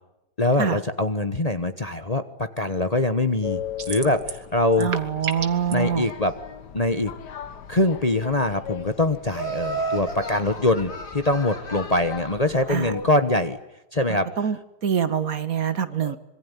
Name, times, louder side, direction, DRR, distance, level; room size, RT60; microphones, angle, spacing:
voice 1, 0.4-3.6 3.9-4.9 5.7-6.3 6.7-7.1 7.7-13.6 13.9-14.3 16.0-16.2, left 2 dB, 25° left, 9 dB, 1.1 m, -23 dB
sound 1, 3.4-13.1, left 8 dB, 80° left, 1.9 m, -38 dB
sound 2, 3.8-4.5 4.7-5.7, right 6 dB, 80° right, 2.2 m, -31 dB
voice 2, 4.8-6.1 12.7-12.9 14.1-14.6 14.8-16.2, right 8 dB, 60° right, 12 dB, 1.8 m, -25 dB
Laughter, 9.3-12.5, right 4 dB, 50° left, 4.6 m, -33 dB
25.5 x 23.0 x 9.6 m, 0.90 s
omnidirectional pair, 1.8 m